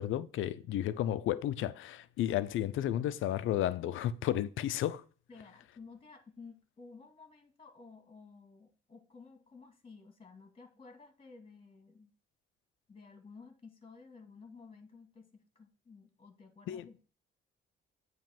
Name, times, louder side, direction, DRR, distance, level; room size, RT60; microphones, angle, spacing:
voice 1, 0.0-5.0 16.7-16.9, left 12 dB, 80° left, 0.6 m, -32 dB
voice 2, 5.3-12.1 12.9-17.1, left 4 dB, 30° left, 2.3 m, -54 dB
8.9 x 3.2 x 6.0 m
cardioid pair, 90°, 20 cm